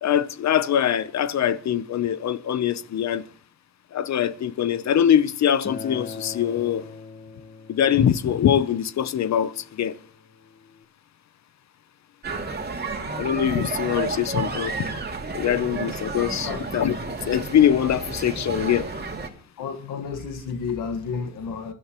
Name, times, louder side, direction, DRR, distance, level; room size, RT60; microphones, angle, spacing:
voice 1, 0.0-3.2 3.9-6.9 7.7-10.0 13.2-14.7 15.3-17.0 17.2-18.9, left 9 dB, 60° left, 0.7 m, -23 dB
Acoustic guitar, 5.6-10.8, left 4 dB, 35° left, 1.1 m, -41 dB
sound 1, 12.2-19.3, right 3 dB, 30° right, 2.4 m, -31 dB
voice 2, 19.6-21.7, left 5 dB, 90° left, 1.6 m, -31 dB
27.0 x 12.0 x 3.0 m
cardioid pair, 115°, 31 cm